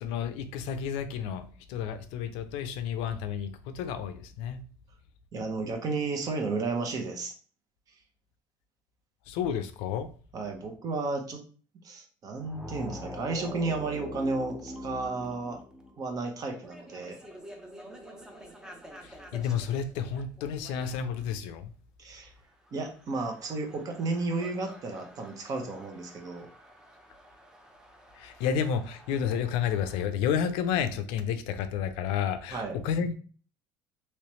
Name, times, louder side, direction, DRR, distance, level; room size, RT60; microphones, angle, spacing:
voice 1, 0.0-4.6 9.3-10.1 19.0-21.7 28.2-33.1, left 8 dB, 75° left, 9 dB, 0.5 m, -31 dB
voice 2, 5.3-7.3 10.3-11.4 11.8-15.6 16.0-17.2 22.0-22.3 22.7-26.5 32.5-32.7, right 3 dB, 40° right, 3 dB, 0.9 m, -33 dB
sound 1, 12.3-21.2 22.7-30.1, left 1 dB, 5° right, 0.6 m, -46 dB
3.1 x 3.1 x 3.0 m, 0.40 s
supercardioid pair, 115°, 9 cm